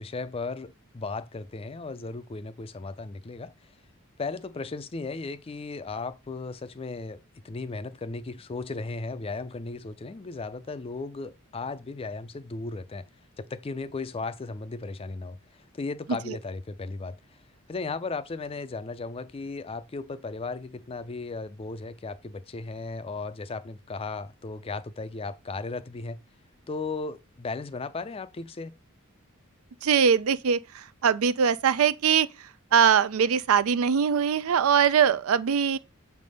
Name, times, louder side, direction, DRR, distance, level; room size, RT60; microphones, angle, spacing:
voice 1, 0.0-3.5 4.2-13.1 13.4-17.2 17.7-26.2 26.7-28.7, left 3 dB, 25° left, 0.4 m, -36 dB
voice 2, 29.8-32.3 32.7-35.8, right 7 dB, 75° right, 0.4 m, -22 dB
6.6 x 3.4 x 5.3 m
head